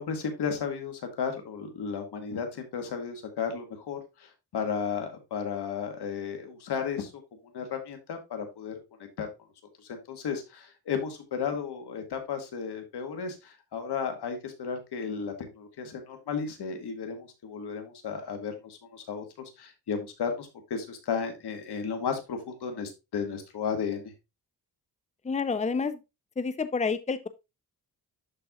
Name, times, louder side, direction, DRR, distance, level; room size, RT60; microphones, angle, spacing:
voice 1, 0.0-7.1 7.5-8.7 9.0-9.3 9.8-24.1, left 6 dB, 85° left, 1.9 m, -34 dB
voice 2, 25.2-26.0 26.4-27.3, left 5 dB, 20° left, 0.7 m, -29 dB
12.0 x 4.5 x 2.3 m
cardioid pair, 90°, 38 cm